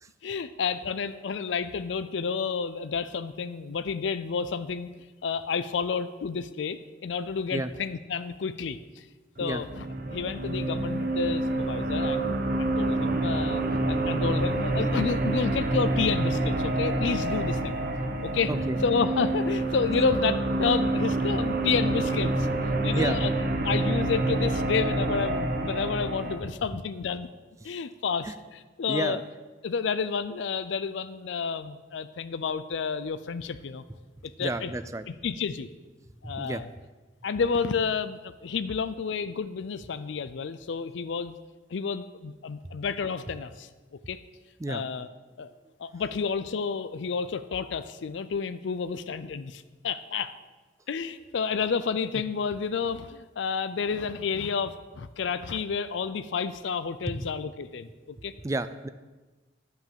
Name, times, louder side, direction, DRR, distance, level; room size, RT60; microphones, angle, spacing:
voice 1, 0.2-4.9 5.2-9.0 9.4-12.3 12.6-13.6 13.9-17.8 18.2-18.5 18.8-22.5 22.8-23.3 23.6-27.3 27.6-28.3 28.8-29.2 29.6-33.8 34.2-34.7 35.1-35.7 36.2-36.7 37.2-41.4 41.7-43.7 44.1-44.2 44.7-45.1 45.4-45.5 45.8-50.3 50.9-58.3, left 5 dB, 75° left, 13 dB, 0.4 m, -30 dB
sound 1, 9.4-26.4, right 2 dB, 50° right, 1.0 m, -27 dB
voice 2, 18.5-18.8 22.9-23.2 27.6-27.7 28.2-28.3 28.9-29.2 34.4-35.1 36.2-36.6 44.6-44.8 57.1-57.2 58.2-58.9, right 2 dB, 15° right, 12 dB, 0.4 m, -31 dB
9.9 x 5.9 x 7.4 m, 1.3 s
head